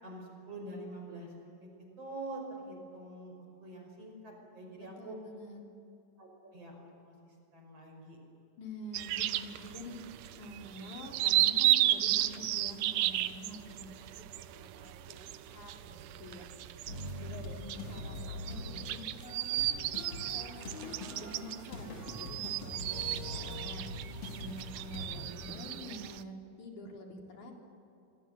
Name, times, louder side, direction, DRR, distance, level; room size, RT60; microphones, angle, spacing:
voice 1, 0.0-1.7 2.0-5.2 6.2-8.2 17.6-17.7, right 2 dB, 50° right, 1 dB, 6.5 m, -46 dB
voice 2, 4.8-5.6 8.6-10.0 10.4-17.6 17.9-26.3 26.6-27.5, left 1 dB, 70° left, 0 dB, 5.4 m, -48 dB
sound 1, 8.9-26.2, right 14 dB, 80° right, 2.3 m, -34 dB
sound 2, 16.9-25.3, left 2 dB, 50° left, 5.0 m, -43 dB
26.0 x 25.5 x 8.0 m, 2.7 s
omnidirectional pair, 3.6 m